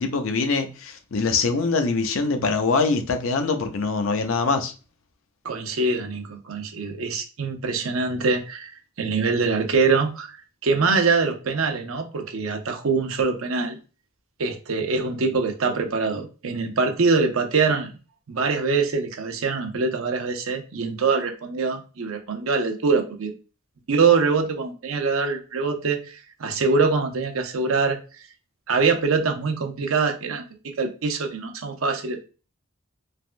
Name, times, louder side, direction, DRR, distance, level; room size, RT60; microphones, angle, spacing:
voice 1, 0.0-4.7, left 4 dB, 75° left, 0.5 m, -23 dB
voice 2, 5.4-10.4 10.6-13.8 14.4-17.9 18.3-23.3 23.9-28.0 28.7-32.2, right 4 dB, 90° right, 0.6 m, -24 dB
3.4 x 2.2 x 2.4 m
head